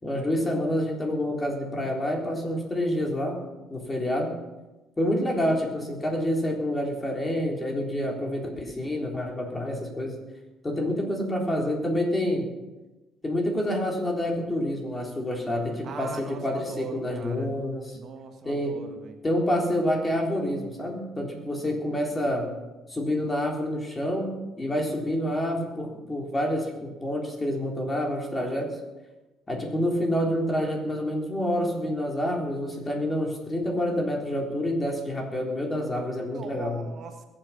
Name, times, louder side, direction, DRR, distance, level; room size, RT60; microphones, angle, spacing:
voice 1, 0.0-3.4 3.7-4.3 5.0-10.2 10.6-12.5 13.2-18.0 18.4-18.8 19.2-22.5 22.9-28.7 29.5-36.8, left 1 dB, 20° left, 0 dB, 3.6 m, -28 dB
voice 2, 15.8-17.5 17.9-19.2 36.3-37.3, right 5 dB, 55° right, 5 dB, 1.5 m, -41 dB
21.0 x 7.8 x 5.9 m, 1.1 s
cardioid pair, 110°, 0 cm